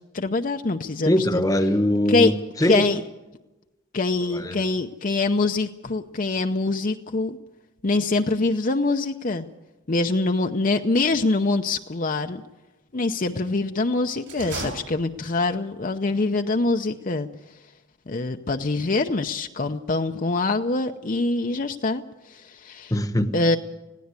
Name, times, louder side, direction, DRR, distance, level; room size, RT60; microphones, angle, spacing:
voice 1, 0.1-1.4 2.1-2.3 2.6-3.0 3.9-7.4 7.8-9.5 9.9-12.4 12.9-17.3 18.1-22.0 22.3-23.0 23.3-23.6, left 3 dB, 45° left, 0.7 m, -24 dB
voice 2, 1.1-2.3 2.6-2.8 4.3-4.7 22.9-23.3, left 1 dB, 20° left, 1.1 m, -21 dB
sound 1, 14.2-15.6, right 3 dB, 70° right, 6.4 m, -35 dB
20.0 x 16.0 x 8.2 m
head